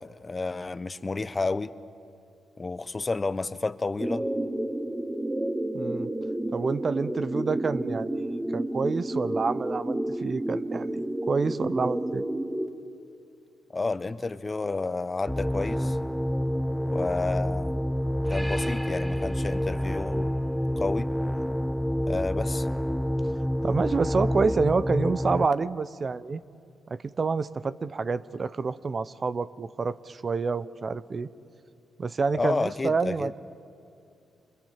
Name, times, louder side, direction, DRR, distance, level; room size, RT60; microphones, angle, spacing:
voice 1, 0.0-1.7 2.6-4.3 13.7-16.0 16.9-17.8 18.3-20.3 20.8-21.1 22.1-22.7 32.3-33.3, left 3 dB, 35° left, 14 dB, 1.1 m, -30 dB
sound 1, 4.0-12.7, right 1 dB, 15° right, 2.4 m, -31 dB
voice 2, 5.7-6.1 6.5-12.2 23.6-26.4 26.9-31.3 32.0-33.4, right 4 dB, 45° right, 14 dB, 0.9 m, -28 dB
sound 2, 15.3-25.5, equal, ahead, 0.6 m, -28 dB
29.0 x 27.5 x 7.5 m, 2.4 s
hypercardioid pair, 40°, 0 cm